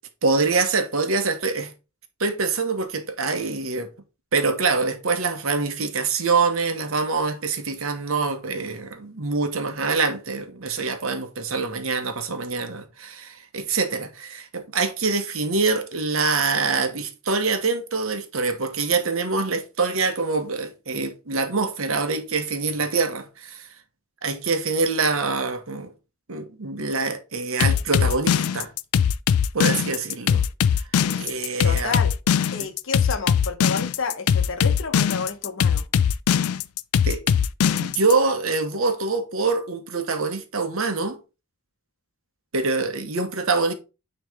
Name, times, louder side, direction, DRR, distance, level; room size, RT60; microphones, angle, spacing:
voice 1, 0.2-1.7 2.2-3.9 4.3-23.7 24.2-25.9 26.3-28.7 29.5-30.4 31.1-32.0 32.6-32.7 37.0-37.2 37.8-41.2 42.5-43.7, right 4 dB, 65° right, 1.1 m, -25 dB
sound 1, 27.6-38.1, left 7 dB, 85° left, 0.4 m, -20 dB
voice 2, 31.6-32.1 32.5-35.9, left 4 dB, 60° left, 0.9 m, -30 dB
9.1 x 3.2 x 3.5 m
head